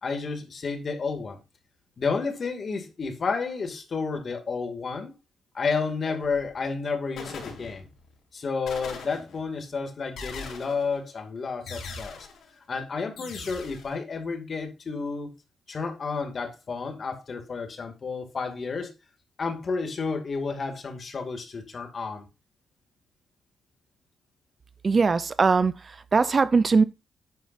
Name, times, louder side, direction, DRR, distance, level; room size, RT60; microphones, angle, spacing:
voice 1, 0.0-1.4 2.0-5.1 5.5-7.9 8.3-12.3 12.7-15.3 15.7-18.9 19.4-22.3, left 4 dB, 40° left, 2.2 m, -31 dB
sound 1, 6.2-6.6 7.2-8.1 8.7-9.6 10.2-11.0 11.7-12.5 13.2-13.9, left 4 dB, 80° left, 4.1 m, -41 dB
voice 2, 24.8-25.7 26.1-26.8, right 4 dB, 35° right, 0.5 m, -20 dB
10.5 x 9.2 x 2.6 m
cardioid pair, 125°, 0 cm